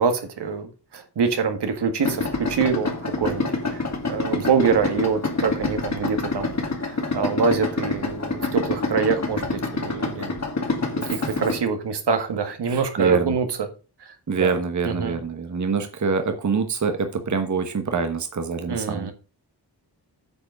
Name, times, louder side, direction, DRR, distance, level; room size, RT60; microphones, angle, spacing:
voice 1, 0.0-3.4 3.7-6.5 6.8-10.4 10.9-13.7 14.0-14.5 14.8-15.2 18.7-19.1, right 5 dB, 75° right, 1.6 m, -25 dB
Idling, 2.0-11.6, left 3 dB, 40° left, 2.0 m, -27 dB
voice 2, 11.0-11.3 12.7-13.4 14.3-19.1, right 5 dB, 45° right, 1.1 m, -25 dB
8.8 x 4.8 x 6.2 m
wide cardioid pair, 100°, 41 cm